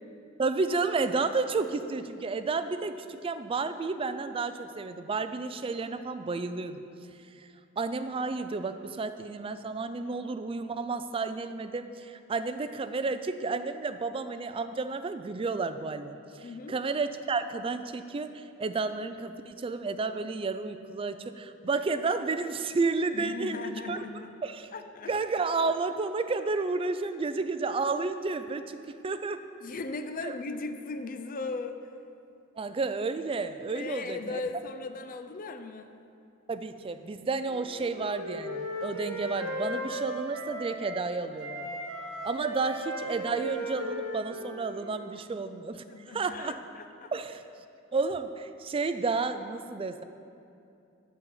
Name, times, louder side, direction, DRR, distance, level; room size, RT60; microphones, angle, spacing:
voice 1, 0.4-6.8 7.8-24.0 24.4-24.7 25.1-28.8 29.0-29.4 30.2-30.3 32.6-34.4 36.5-41.8 42.2-46.6 47.1-47.4 47.9-50.0, right 4 dB, 25° right, 10 dB, 0.4 m, -31 dB
voice 2, 16.4-16.8 23.1-24.4 24.7-25.1 29.6-31.9 33.7-35.9 45.9-47.1, left 3 dB, 45° left, 8 dB, 0.5 m, -38 dB
Wind instrument woodwind instrument, 37.5-41.0 41.4-45.1, equal, 75° right, 1.4 m, -37 dB
12.5 x 4.2 x 7.2 m, 2.6 s
head